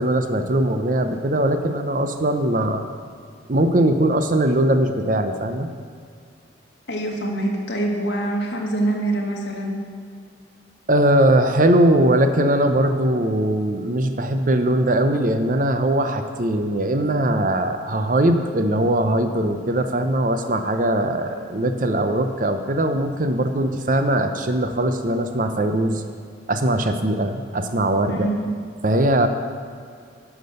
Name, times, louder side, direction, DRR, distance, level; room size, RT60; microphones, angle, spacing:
voice 1, 0.0-2.9 3.5-5.7 10.9-26.0 26.5-28.3 28.8-29.3, right 1 dB, 45° right, 7 dB, 0.6 m, -20 dB
voice 2, 6.9-9.8 21.4-21.5 28.1-28.5, right 1 dB, 65° left, 0 dB, 1.6 m, -25 dB
10.5 x 6.0 x 6.6 m, 2.2 s
head